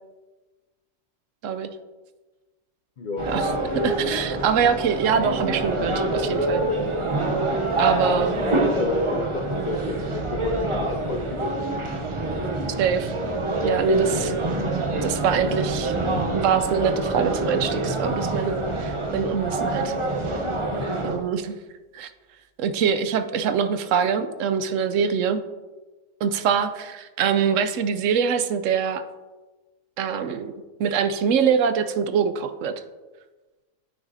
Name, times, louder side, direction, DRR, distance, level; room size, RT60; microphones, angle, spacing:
voice 1, 3.0-3.3 8.4-12.0 20.8-21.2, left 4 dB, 55° left, 3 dB, 0.5 m, -31 dB
sound 1, 3.2-21.2, right 2 dB, 35° right, 0.5 m, -26 dB
voice 2, 3.7-6.6 7.8-8.4 12.8-13.1 13.6-14.3 15.0-15.9 16.3-20.0 21.0-21.6 21.9-22.1 22.6-25.4 26.2-29.0 30.0-30.5 30.8-32.7, right 7 dB, 75° right, 10 dB, 0.9 m, -24 dB
8.9 x 6.1 x 2.6 m, 1.2 s
omnidirectional pair, 1.4 m